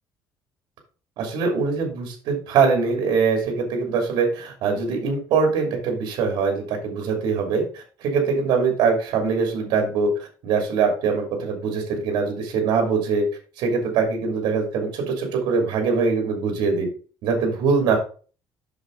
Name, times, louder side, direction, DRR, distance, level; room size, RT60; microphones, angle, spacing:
voice 1, 1.2-10.1 10.4-13.3 13.6-16.9 17.2-18.0, right 5 dB, 75° right, 3 dB, 2.7 m, -22 dB
7.9 x 6.4 x 3.8 m, 0.38 s
cardioid pair, 175°, 8 cm